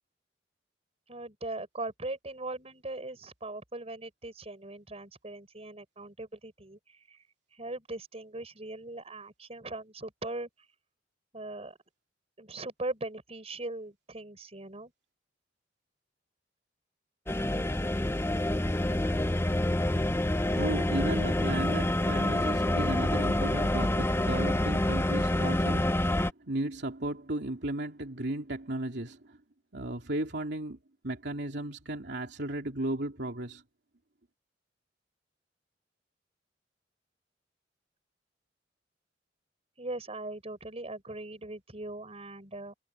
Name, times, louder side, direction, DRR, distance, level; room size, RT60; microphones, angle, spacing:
voice 1, 1.1-7.2 7.6-10.5 11.3-11.8 12.4-14.9 39.8-42.7, right 2 dB, 35° right, 5.6 m, -40 dB
sound 1, 17.3-26.3, left 1 dB, 15° left, 0.7 m, -27 dB
voice 2, 20.4-29.4 29.7-30.8 31.0-33.6, right 1 dB, 65° right, 3.1 m, -35 dB
head